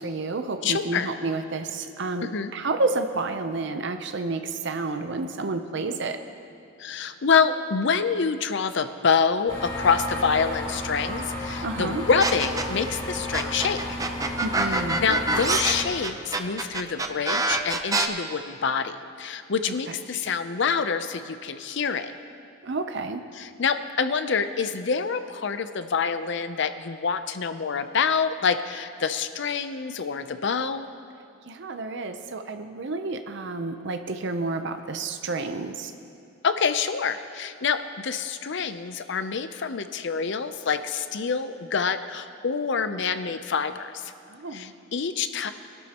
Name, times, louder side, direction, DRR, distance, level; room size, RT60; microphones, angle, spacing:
voice 1, 0.0-6.2 11.6-12.0 14.4-15.0 19.9-20.0 22.6-23.3 31.5-35.9 44.3-44.7, right 3 dB, 60° right, 7 dB, 0.7 m, -30 dB
voice 2, 0.6-1.1 2.2-2.5 6.8-14.0 15.0-22.1 23.4-30.9 36.4-44.1 44.5-45.5, left 5 dB, 65° left, 10 dB, 0.6 m, -26 dB
sound 1, 9.5-15.8, left 1 dB, 20° left, 3.3 m, -33 dB
sound 2, 12.2-12.9 13.3-18.1, right 2 dB, 20° right, 0.6 m, -25 dB
21.5 x 12.5 x 3.0 m, 2.7 s
head